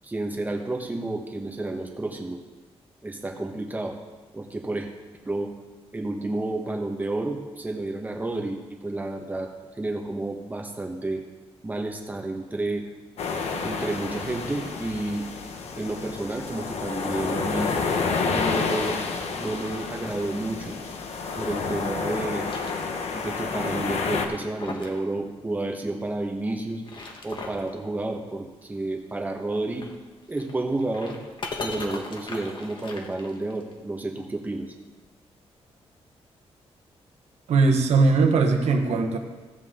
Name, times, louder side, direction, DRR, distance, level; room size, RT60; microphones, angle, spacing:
voice 1, 0.0-2.4 3.0-4.0 4.3-4.9 5.2-5.5 5.9-9.5 9.8-11.2 11.6-12.8 13.6-15.2 15.8-17.7 18.2-19.0 19.3-20.8 21.3-22.5 23.1-26.8 27.2-29.9 30.3-31.2 31.6-34.7, right 2 dB, 15° right, 2 dB, 1.2 m, -30 dB
sound 1, 13.2-24.3, left 4 dB, 75° left, 1.1 m, -29 dB
sound 2, 20.4-21.6 22.1-23.3 23.6-23.7 24.2-25.0 25.3-25.4 26.6-27.7 29.6-33.7, left 3 dB, 45° left, 1.4 m, -40 dB
voice 2, 37.5-39.2, right 3 dB, 80° right, 4 dB, 1.2 m, -20 dB
15.5 x 7.5 x 3.7 m, 1.2 s
wide cardioid pair, 145°, 11 cm